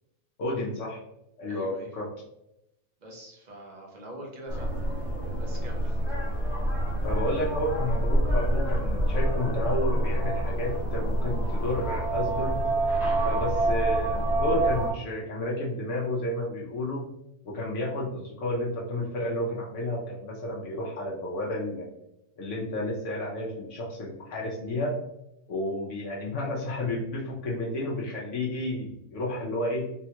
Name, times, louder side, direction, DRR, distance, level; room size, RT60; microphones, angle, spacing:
voice 1, 0.4-1.0 1.4-2.1 7.0-12.6 13.2-17.1 17.4-21.9 22.4-25.0 25.5-29.9, left 1 dB, 65° left, -4 dB, 0.9 m, -31 dB
voice 2, 1.5-1.9 3.0-5.0 5.4-6.0, right 1 dB, 45° right, -1 dB, 0.6 m, -44 dB
sound 1, 4.5-14.9, right 1 dB, ahead, 0.9 m, -27 dB
3.4 x 2.2 x 2.8 m, 0.84 s
omnidirectional pair, 1.5 m